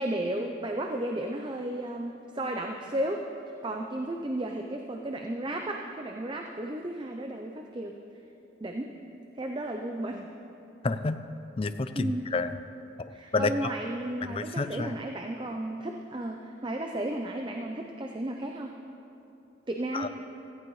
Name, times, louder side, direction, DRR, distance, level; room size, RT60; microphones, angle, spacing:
voice 1, 0.0-3.2 3.6-7.9 8.6-8.9 9.4-10.3 11.9-12.3 13.1-18.7 19.7-20.1, right 1 dB, 25° right, 3 dB, 0.5 m, -33 dB
voice 2, 10.8-11.2 11.6-12.5 13.3-13.5 14.3-14.9 19.9-20.1, left 3 dB, 30° left, 11 dB, 0.4 m, -29 dB
17.5 x 14.5 x 3.2 m, 2.8 s
head